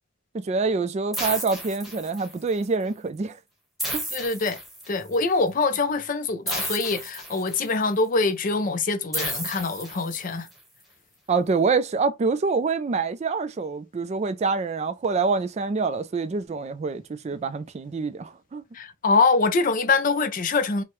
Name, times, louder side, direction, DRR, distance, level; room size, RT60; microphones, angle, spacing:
voice 1, 0.3-3.4 3.9-4.0 11.3-18.6, right 4 dB, 30° right, 0.3 m, -26 dB
sound 1, 1.1-2.5 3.8-5.2 6.5-7.8 9.1-10.5, right 1 dB, ahead, 1.1 m, -33 dB
voice 2, 4.1-4.6 4.9-10.5 18.7-20.8, left 3 dB, 40° left, 0.5 m, -24 dB
4.6 x 2.1 x 3.1 m
head